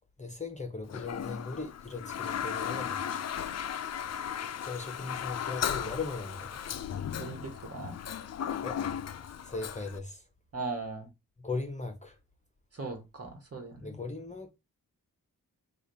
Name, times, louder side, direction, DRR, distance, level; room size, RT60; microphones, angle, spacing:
voice 1, 0.2-3.2 4.1-6.6 8.6-8.8 9.4-10.2 11.4-12.2 13.8-14.5, left 3 dB, 20° left, 0.9 m, -39 dB
Toilet flush, 0.9-10.0, left 9 dB, 45° left, 0.4 m, -36 dB
voice 2, 7.2-8.0 10.5-11.1 12.7-14.0, right 3 dB, 40° right, 1.4 m, -39 dB
3.2 x 2.5 x 4.0 m
cardioid pair, 55°, 37 cm